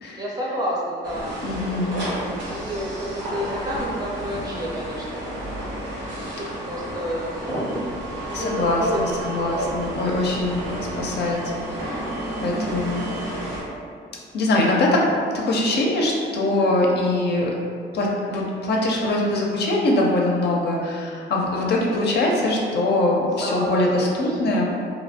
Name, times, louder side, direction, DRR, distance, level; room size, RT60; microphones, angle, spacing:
voice 1, 0.2-1.4 1.9-5.7 6.0-9.8 12.2-12.7 16.6-16.8 21.5-21.8 23.4-24.6, equal, 20° right, -5 dB, 0.6 m, -31 dB
sound 1, 1.0-13.6, right 1 dB, 70° right, 0.9 m, -31 dB
voice 2, 1.4-2.0 8.3-10.6 11.0-12.0 12.4-13.0 14.3-15.1 15.4-17.5 17.9-24.8, left 2 dB, 55° left, -2 dB, 0.5 m, -22 dB
2.7 x 2.0 x 2.7 m, 2.3 s
cardioid pair, 90°, 20 cm